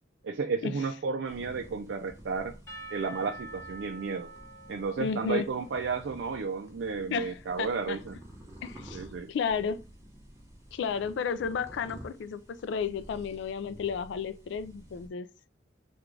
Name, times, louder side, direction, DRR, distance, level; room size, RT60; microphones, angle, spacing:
voice 1, 0.2-2.6 2.9-4.3 4.7-8.2 8.9-9.3, right 4 dB, 70° right, 0.4 m, -32 dB
sound 1, 1.2-15.1, equal, 15° right, 0.8 m, -51 dB
Percussion / Church bell, 2.7-6.5, right 3 dB, 15° left, 1.0 m, -47 dB
voice 2, 5.0-5.5 7.1-8.0 8.6-9.8 10.7-15.3, left 6 dB, 70° left, 0.3 m, -33 dB
3.7 x 2.3 x 3.1 m
head